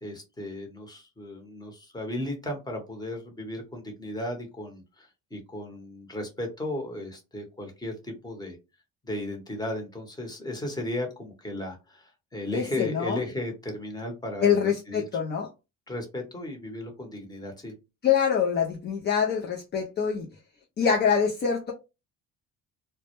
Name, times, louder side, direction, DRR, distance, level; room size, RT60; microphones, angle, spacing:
voice 1, 0.0-8.6 9.0-15.0 15.9-17.7, left 1 dB, 10° left, 0.9 m, -35 dB
voice 2, 12.5-13.2 14.4-15.5 18.0-20.3 20.8-21.7, left 7 dB, 35° left, 0.4 m, -25 dB
2.1 x 2.1 x 2.9 m
cardioid pair, 100°, 33 cm